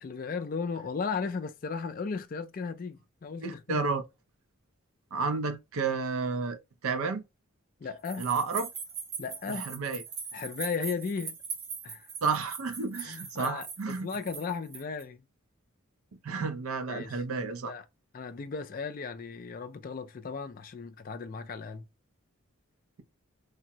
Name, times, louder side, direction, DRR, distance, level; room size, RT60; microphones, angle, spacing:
voice 1, 0.0-3.9 7.8-8.3 9.2-9.7 10.3-11.4 11.8-12.1 12.9-15.2 16.9-17.2 17.6-17.9 18.1-21.9, left 5 dB, 40° left, 0.3 m, -36 dB
voice 2, 3.4-4.0 5.1-7.2 8.2-8.7 9.6-10.0 12.2-14.1 16.2-17.7, right 4 dB, 75° right, 0.5 m, -31 dB
sound 1, 8.0-15.0, right 5 dB, 50° right, 0.8 m, -41 dB
3.4 x 2.0 x 2.7 m
head